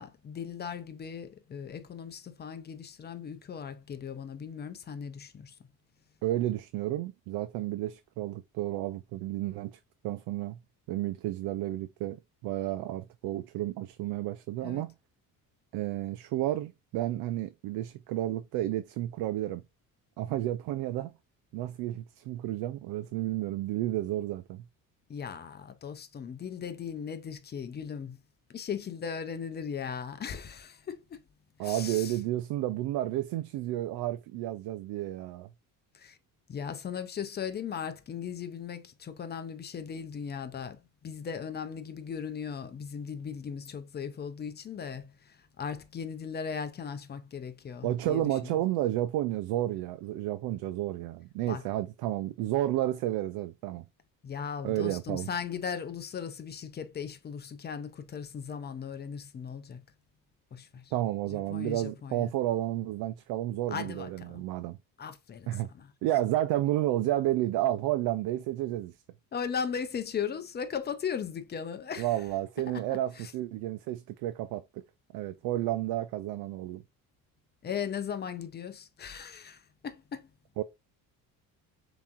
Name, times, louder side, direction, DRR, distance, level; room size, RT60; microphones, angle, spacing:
voice 1, 0.0-5.5 14.6-14.8 25.1-28.2 28.5-31.2 31.6-32.2 35.9-36.2 36.5-48.6 51.5-51.6 54.2-59.8 60.5-60.9 61.3-62.3 63.7-64.4 65.0-65.9 69.3-72.1 72.7-73.3 77.6-80.3, left 7 dB, 30° left, 0.6 m, -38 dB
voice 2, 6.2-9.8 10.0-10.6 10.9-14.9 15.7-19.6 20.2-21.1 21.5-24.6 31.6-35.5 47.8-53.8 54.6-55.3 60.9-64.8 65.5-65.7 66.0-68.9 72.0-74.6 75.1-76.8 80.6-80.7, right 14 dB, 85° right, 0.5 m, -31 dB
7.1 x 3.0 x 2.5 m
cardioid pair, 140°, 36 cm